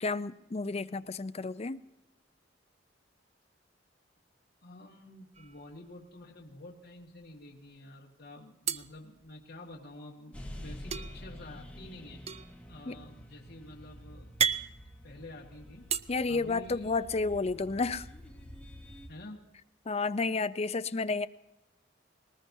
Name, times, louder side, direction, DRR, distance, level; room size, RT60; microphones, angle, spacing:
voice 1, 0.0-1.8 12.9-13.0 16.1-18.1 19.9-21.3, left 3 dB, 35° left, 12 dB, 0.5 m, -31 dB
voice 2, 4.6-12.2 12.7-14.3 15.0-15.9 16.3-17.0 19.1-19.4, left 1 dB, 60° left, -3 dB, 1.7 m, -49 dB
sound 1, 5.3-6.2 6.6-6.7 7.0-7.7 8.6-9.9 10.9-16.0, right 7 dB, 35° right, 0.5 m, -36 dB
sound 2, 10.3-19.1, equal, 5° left, 1.6 m, -48 dB
20.5 x 19.5 x 2.7 m, 0.94 s
head